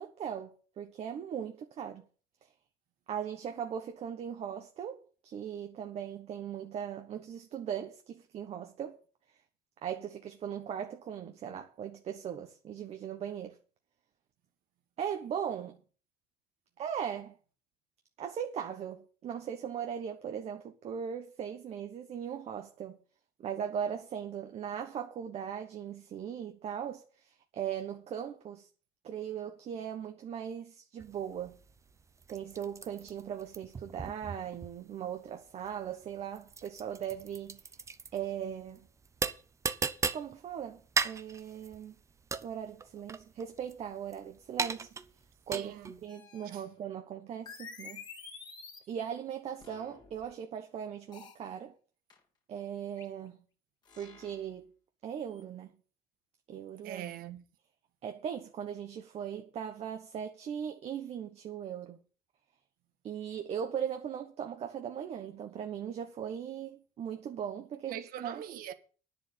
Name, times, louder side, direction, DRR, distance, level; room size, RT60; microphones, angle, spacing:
voice 1, 0.0-2.0 2.4-2.5 3.1-9.0 9.8-13.6 15.0-15.8 16.8-17.4 18.2-23.0 23.4-28.7 29.0-31.6 32.3-37.6 38.1-38.9 40.1-41.9 42.4-44.9 45.5-48.0 48.9-51.7 52.5-53.4 54.0-54.7 55.0-55.7 56.5-57.0 58.0-62.0 63.0-68.4, right 8 dB, 40° right, 1.2 m, -39 dB
sound 1, 31.0-46.1, right 5 dB, 20° right, 0.7 m, -38 dB
voice 2, 45.5-46.0 46.4-46.6 56.8-57.4 67.9-68.7, right 11 dB, 60° right, 1.6 m, -42 dB
sound 2, 46.1-46.8 47.5-49.0 49.6-50.3 51.1-51.4 52.1-52.2 53.0-53.1 53.9-54.5 55.3-55.4, left 5 dB, 25° left, 2.4 m, -49 dB
10.5 x 7.0 x 8.2 m
cardioid pair, 155°, 17 cm